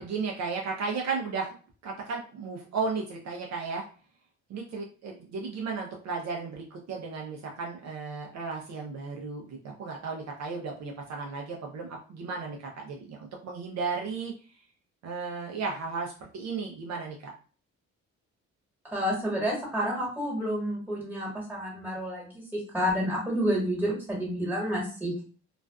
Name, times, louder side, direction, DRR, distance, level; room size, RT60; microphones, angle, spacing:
voice 1, 0.0-1.6 1.8-3.8 4.5-14.3 15.0-17.3, right 4 dB, 60° right, 0 dB, 0.6 m, -34 dB
voice 2, 18.9-25.2, equal, 5° right, -3 dB, 1.4 m, -29 dB
2.4 x 2.3 x 2.2 m, 0.40 s
cardioid pair, 90°, 30 cm